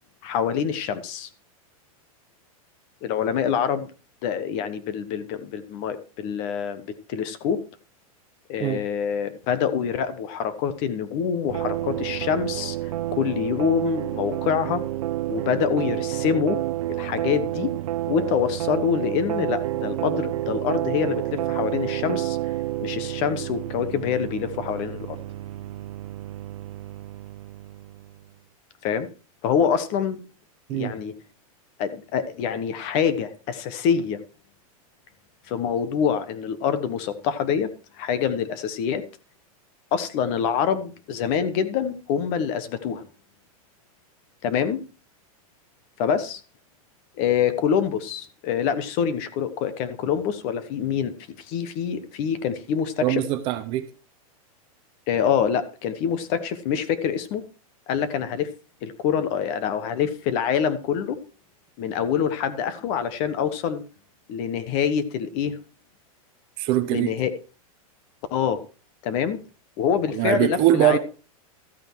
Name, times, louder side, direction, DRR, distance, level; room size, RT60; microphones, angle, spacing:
voice 1, 0.2-1.3 3.0-3.9 4.2-7.6 8.5-12.8 13.1-14.8 15.3-16.6 16.9-17.7 18.1-22.4 22.8-25.2 28.8-29.1 29.4-30.2 30.7-31.1 31.8-34.2 35.5-37.7 38.0-39.0 39.9-43.0 44.4-44.8 46.0-46.4 47.2-53.2 55.1-57.4 57.9-58.5 58.8-61.2 61.8-63.8 64.3-65.6 66.9-67.3 68.3-68.6 69.0-69.4 69.8-71.0, left 7 dB, 30° left, 1.1 m, -25 dB
sound 1, 11.5-28.2, right 15 dB, 65° right, 0.6 m, -30 dB
voice 2, 53.0-53.9 66.6-67.2 70.1-71.0, right 13 dB, 25° right, 0.8 m, -22 dB
13.5 x 8.8 x 4.6 m
supercardioid pair, 175°, 19 cm